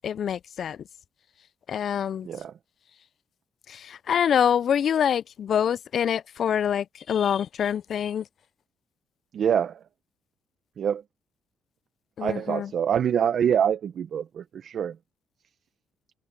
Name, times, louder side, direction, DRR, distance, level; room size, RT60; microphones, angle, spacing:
voice 1, 0.0-0.8 1.7-2.3 3.7-8.2 12.2-12.7, left 8 dB, 60° left, 0.3 m, -25 dB
voice 2, 9.3-9.8 10.8-11.0 12.2-15.0, right 8 dB, 60° right, 0.9 m, -25 dB
cardioid pair, 90°, 0 cm